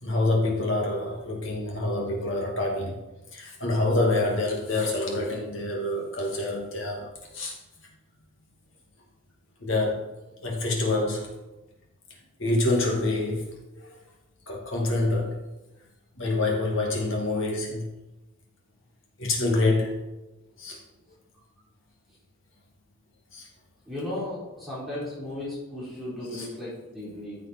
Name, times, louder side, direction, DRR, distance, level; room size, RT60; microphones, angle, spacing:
voice 1, 0.0-3.0 3.3-7.5 9.6-10.1 10.4-11.3 12.4-13.5 13.8-14.0 14.5-15.4 16.2-17.9 19.2-20.0 20.6-20.8 23.3-23.5 26.3-26.5, left 2 dB, 55° left, -1 dB, 2.5 m, -26 dB
voice 2, 23.9-27.4, left 1 dB, ahead, -10 dB, 4.2 m, -35 dB
14.5 x 7.2 x 4.5 m, 1.0 s
head